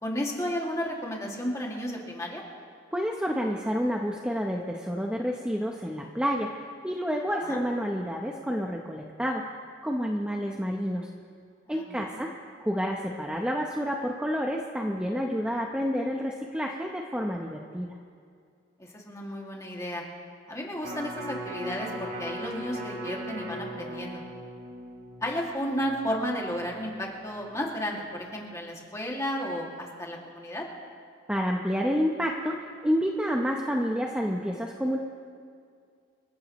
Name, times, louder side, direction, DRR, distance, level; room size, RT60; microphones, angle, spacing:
voice 1, 0.0-2.4 7.4-7.6 11.7-12.2 18.8-20.0 20.5-24.2 25.2-30.7, equal, 15° left, -2 dB, 2.3 m, -33 dB
voice 2, 2.9-9.4 9.8-11.1 11.7-12.3 12.6-17.9 31.3-32.6 32.8-35.0, equal, 5° right, 0 dB, 0.8 m, -29 dB
Electric guitar, 20.8-27.0 27.4-27.5, right 1 dB, 60° right, 3.8 m, -39 dB
27.5 x 14.5 x 3.1 m, 2.3 s
head